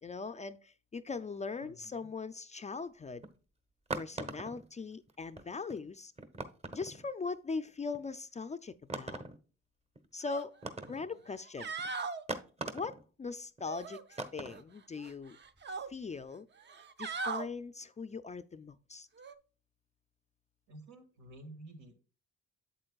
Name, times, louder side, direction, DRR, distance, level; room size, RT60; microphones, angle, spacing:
voice 1, 0.0-3.2 4.0-6.1 6.7-9.2 10.1-10.6 10.9-11.7 12.7-15.4 15.9-16.5 17.0-19.1, left 4 dB, 25° left, 0.4 m, -40 dB
voice 2, 1.6-2.1 10.8-11.2 20.7-21.9, right 1 dB, 75° right, 2.1 m, -52 dB
sound 1, 3.2-3.4 3.9-4.7 5.1-5.2 5.4-5.5 5.7-5.8 6.2-7.1 7.9-8.1 8.9-9.4 10.0-10.1 10.6-11.1 11.8-11.9 12.3-13.0 13.6-13.7 14.2-14.6, right 2 dB, 20° right, 1.0 m, -40 dB
sound 2, 10.2-10.4 10.8-10.9 11.4-12.2 13.6-14.6 15.0-15.9 16.6-17.5 19.2-19.3, right 4 dB, 35° right, 0.7 m, -40 dB
8.0 x 7.6 x 2.3 m
cardioid pair, 90°, 30 cm